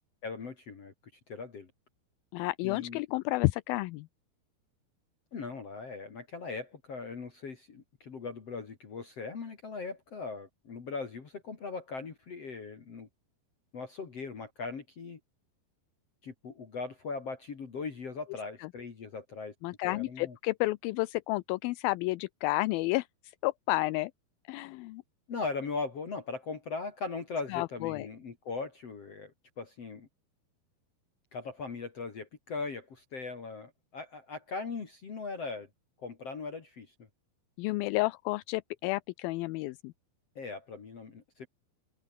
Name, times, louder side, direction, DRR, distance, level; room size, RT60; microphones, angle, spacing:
voice 1, 0.2-0.9 1.3-1.7 2.6-3.0 5.3-13.1 13.7-15.2 16.2-19.5 19.8-20.4 25.3-30.1 31.3-35.7 36.0-36.9 40.3-41.5, left 4 dB, 40° left, 3.4 m, -39 dB
voice 2, 2.3-4.1 18.6-18.7 19.6-23.1 23.4-24.1 24.5-25.0 27.5-28.1 37.6-39.9, left 20 dB, 80° left, 2.2 m, -31 dB
omnidirectional pair, 4.7 m